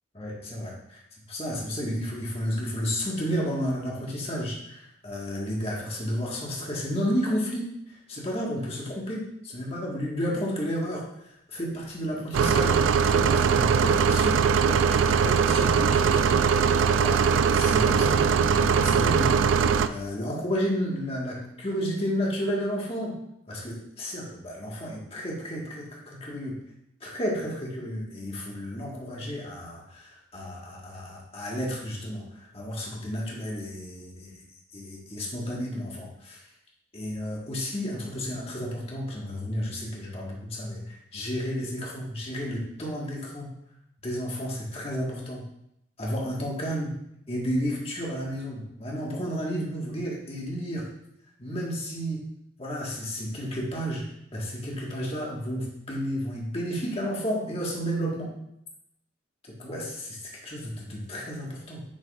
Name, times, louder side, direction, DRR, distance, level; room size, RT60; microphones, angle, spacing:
voice 1, 0.1-1.0 1.3-11.0 11.5-16.3 16.9-19.3 19.7-23.2 23.5-26.6 27.0-34.3 34.7-36.4 36.9-43.5 44.0-45.5 46.0-46.9 47.3-50.9 51.4-52.2 52.6-58.3 59.6-61.8, equal, 30° left, -3 dB, 1.5 m, -32 dB
sound 1, 12.3-19.9, right 6 dB, 75° right, 0.3 m, -21 dB
7.5 x 6.0 x 2.4 m, 0.78 s
head